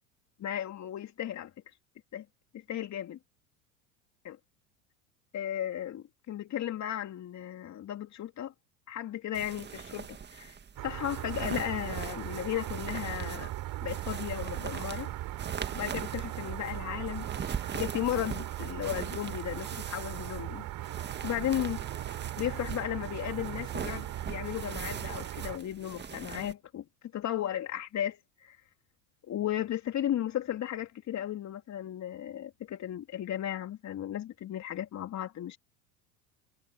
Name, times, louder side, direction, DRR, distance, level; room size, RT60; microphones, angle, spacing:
voice 1, 0.4-1.5 2.1-2.2 2.5-3.2 4.2-4.4 5.3-8.5 8.9-10.6 10.8-13.5 13.8-15.1 15.7-17.3 17.7-20.6 21.2-21.9 22.4-26.8 27.1-28.6 29.3-35.6, left 11 dB, 40° left, 3.0 m, -35 dB
sound 1, 9.3-26.5, right 7 dB, 25° right, 1.9 m, -42 dB
sound 2, 10.8-25.6, right 15 dB, 50° right, 4.3 m, -38 dB
hypercardioid pair, 80°, 44 cm